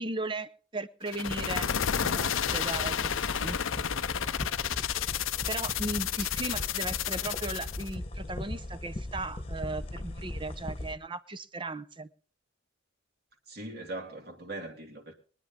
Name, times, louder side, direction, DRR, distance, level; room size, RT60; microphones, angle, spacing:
voice 1, 0.0-1.7 2.0-3.6 5.5-12.1, right 2 dB, 25° right, 0.8 m, -37 dB
sound 1, 1.1-7.9, left 9 dB, 90° left, 0.6 m, -31 dB
sound 2, 1.2-10.9, left 1 dB, 30° left, 1.2 m, -39 dB
voice 2, 13.5-15.1, right 2 dB, 50° right, 2.9 m, -40 dB
22.5 x 9.9 x 3.8 m
head